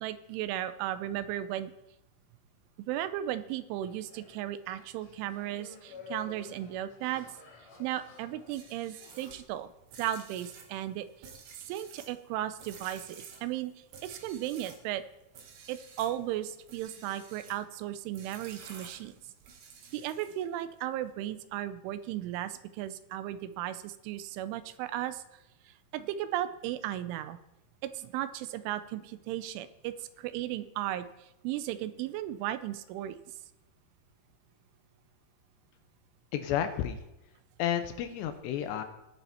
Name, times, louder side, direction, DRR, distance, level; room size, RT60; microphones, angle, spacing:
voice 1, 0.0-1.7 2.8-7.3 7.8-11.1 11.7-13.7 14.0-15.0 15.7-19.1 19.9-25.2 25.7-27.4 27.8-31.1 31.4-33.2, right 12 dB, 90° right, 12 dB, 3.2 m, -35 dB
sound 1, 3.8-9.3, left 5 dB, 40° left, 4.0 m, -51 dB
sound 2, 8.4-14.9 15.3-16.2 16.6-17.6 18.1-20.5, right 6 dB, 65° right, 3.0 m, -51 dB
voice 2, 36.3-37.0 37.6-38.8, left 10 dB, 75° left, 8 dB, 2.9 m, -31 dB
19.0 x 7.0 x 4.3 m, 0.90 s
omnidirectional pair, 5.4 m